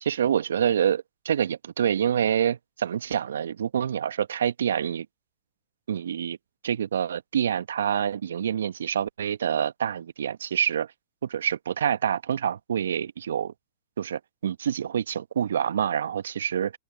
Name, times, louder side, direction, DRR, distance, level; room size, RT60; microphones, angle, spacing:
voice 1, 0.0-5.1 5.9-6.4 6.6-10.9 11.2-13.5 14.0-16.7, right 9 dB, 75° right, 1.0 m, -27 dB
open air
hypercardioid pair, 105°, 0 cm